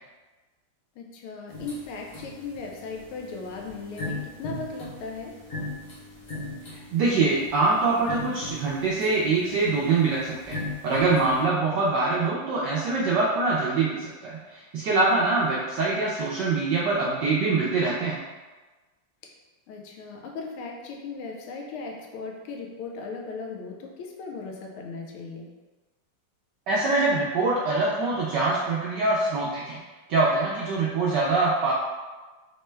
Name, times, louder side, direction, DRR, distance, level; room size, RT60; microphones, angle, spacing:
voice 1, 1.0-5.3 19.2-19.3 19.7-25.5, left 4 dB, 90° left, 0 dB, 1.5 m, -37 dB
sound 1, 1.5-11.4, left 2 dB, 55° left, 1.0 m, -39 dB
voice 2, 6.7-10.6 10.8-18.1 26.7-29.8 30.1-31.7, right 3 dB, 75° right, -6 dB, 1.0 m, -24 dB
4.3 x 2.1 x 3.2 m, 1.2 s
omnidirectional pair, 2.3 m